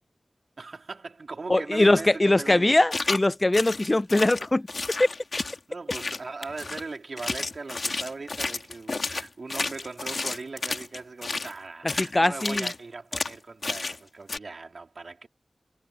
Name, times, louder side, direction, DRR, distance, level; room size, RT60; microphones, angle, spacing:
voice 1, 0.6-3.1 5.7-15.3, right 3 dB, 80° right, 3.4 m, -39 dB
voice 2, 1.5-4.7 12.0-12.7, left 2 dB, 30° left, 0.3 m, -21 dB
sound 1, 2.9-3.3 3.5-5.6 5.9-6.8 7.2-11.5 11.9-12.1 12.4-12.8 13.1-13.3 13.6-14.0 14.3-14.4, left 3 dB, 70° left, 2.2 m, -31 dB
wide cardioid pair, 55°, 0 cm